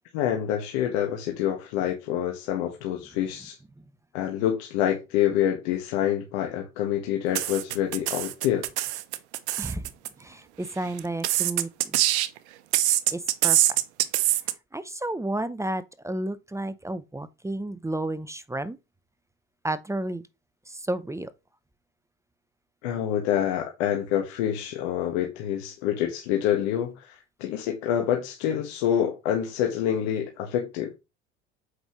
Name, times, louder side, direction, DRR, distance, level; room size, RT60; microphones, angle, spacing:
voice 1, 0.1-3.6 4.1-8.7 22.8-30.9, left 10 dB, 75° left, 1.5 m, -27 dB
sound 1, 7.3-10.1 11.0-12.4 12.7-14.5, right 15 dB, 80° right, 0.8 m, -24 dB
voice 2, 9.6-9.9 10.2-12.0 13.1-13.8 14.7-18.8 19.6-20.3 20.7-21.3, right 1 dB, 10° right, 0.7 m, -32 dB
7.9 x 5.4 x 3.1 m
hypercardioid pair, 75°, 33 cm